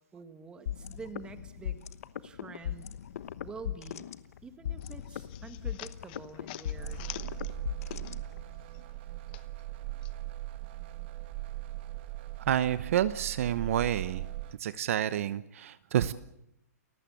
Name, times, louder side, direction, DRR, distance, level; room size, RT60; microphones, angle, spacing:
voice 1, 0.1-1.9 2.2-2.9 3.4-4.1 4.4-7.0, right 5 dB, 10° right, 10 dB, 1.8 m, -47 dB
sound 1, 0.7-8.6, left 10 dB, 60° left, 1.1 m, -39 dB
Opening a wallet, 4.8-8.4 8.7-10.1, left 18 dB, 35° left, 1.0 m, -48 dB
sound 2, 6.7-14.6, right 17 dB, 40° right, 1.5 m, -39 dB
voice 2, 12.5-14.3 14.6-16.1, right 11 dB, 55° right, 15 dB, 0.9 m, -29 dB
29.5 x 15.5 x 8.6 m, 0.78 s
hypercardioid pair, 160°, 9 cm